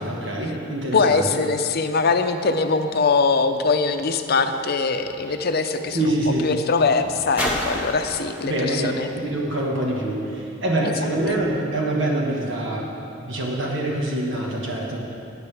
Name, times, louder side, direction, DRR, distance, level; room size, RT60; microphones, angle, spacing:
voice 1, 0.0-1.3 5.9-6.5 8.4-8.9 9.1-12.9 13.2-15.0, right 1 dB, 70° right, -2 dB, 1.5 m, -25 dB
voice 2, 0.9-6.0 6.4-9.1 10.8-10.9 11.3-11.4, left 4 dB, 50° left, 8 dB, 0.6 m, -22 dB
sound 1, 5.4-10.4 11.2-11.3, left 1 dB, 10° right, 1.8 m, -35 dB
18.0 x 9.3 x 3.4 m, 2.6 s
head